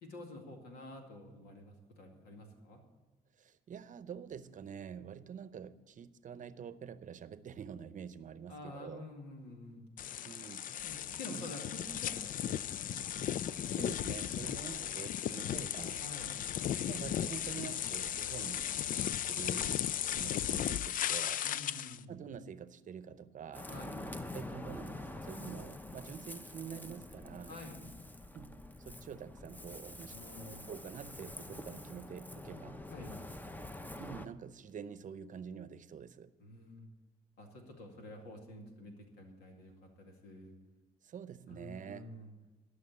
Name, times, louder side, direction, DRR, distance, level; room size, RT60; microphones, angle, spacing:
voice 1, 0.0-2.8 8.5-9.8 10.8-13.1 14.3-14.6 16.0-16.4 21.4-22.2 23.7-24.1 27.5-27.9 30.1-30.7 32.9-33.2 36.4-36.9 37.4-40.5 41.5-42.3, left 2 dB, 85° left, 2 dB, 2.3 m, -49 dB
voice 2, 3.4-9.1 10.2-10.9 11.3-11.5 13.7-16.0 16.9-18.7 19.0-21.4 22.1-23.7 24.3-27.6 28.3-30.2 30.7-32.8 34.0-36.3 41.0-42.1, right 7 dB, 55° right, 14 dB, 0.7 m, -47 dB
sound 1, 10.0-22.0, left 10 dB, 60° left, 0.4 m, -36 dB
Ocean, 23.5-34.3, left 1 dB, 10° left, 0.8 m, -46 dB
12.5 x 6.4 x 8.4 m, 1.2 s
supercardioid pair, 65°, 16 cm